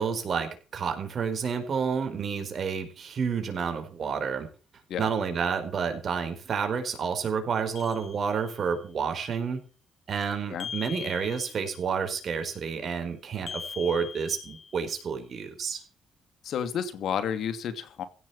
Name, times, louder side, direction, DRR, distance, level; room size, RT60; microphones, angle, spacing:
voice 1, 0.0-4.5 5.0-9.6 10.1-15.8, right 6 dB, 55° right, 7 dB, 4.6 m, -30 dB
sound 1, 7.7-8.8 10.6-11.9 13.5-15.0, left 7 dB, 45° left, 3.1 m, -41 dB
voice 2, 16.4-18.0, left 8 dB, 70° left, 11 dB, 2.5 m, -31 dB
16.0 x 7.6 x 7.1 m, 0.38 s
cardioid pair, 90°, 0 cm